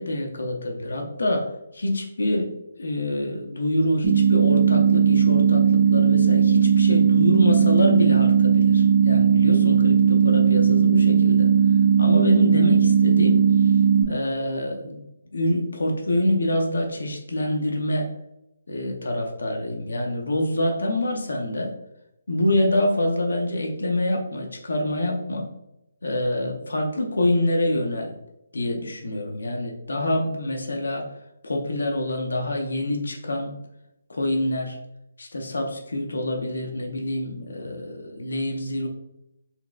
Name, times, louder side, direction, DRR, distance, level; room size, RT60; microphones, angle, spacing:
voice 1, 0.0-2.5 2.8-11.5 12.0-13.8 14.1-15.0 15.3-18.1 18.7-21.7 22.3-25.5 26.0-28.2 28.5-31.1 31.4-33.5 34.1-34.8 35.2-38.9, left 1 dB, 75° left, 1 dB, 0.6 m, -26 dB
sound 1, 4.0-14.0, right 7 dB, 40° right, 0.6 m, -17 dB
4.0 x 2.0 x 2.3 m, 0.85 s
figure-of-eight pair, 150°, 0 cm